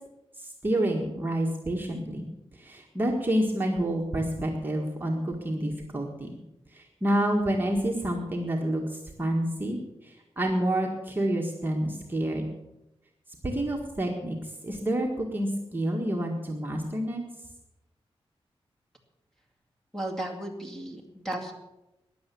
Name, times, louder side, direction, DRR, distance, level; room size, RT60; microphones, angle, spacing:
voice 1, 0.4-2.3 2.5-6.4 6.7-12.5 13.4-17.2, right 1 dB, 20° right, -1 dB, 1.7 m, -28 dB
voice 2, 19.9-21.5, right 1 dB, 5° left, 1 dB, 2.2 m, -35 dB
14.5 x 10.5 x 7.0 m, 0.95 s
wide cardioid pair, 150°, 10 cm